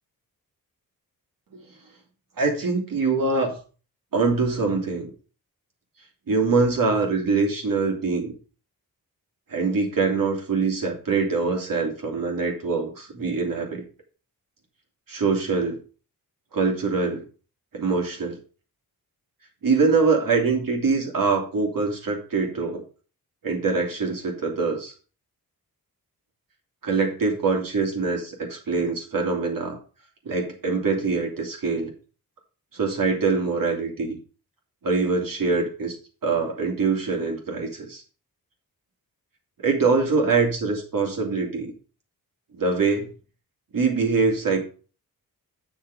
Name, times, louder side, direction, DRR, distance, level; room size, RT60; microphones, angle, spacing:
voice 1, 2.4-3.6 4.1-5.1 6.3-8.3 9.5-13.8 15.1-15.8 16.5-17.2 17.7-18.4 19.6-22.8 23.4-24.9 26.8-29.8 30.2-31.9 32.7-34.2 34.8-36.0 36.2-38.0 39.6-41.7 42.6-43.1 43.7-44.6, right 4 dB, 65° right, 0 dB, 3.0 m, -24 dB
8.0 x 6.2 x 4.8 m, 0.37 s
wide cardioid pair, 100°, 37 cm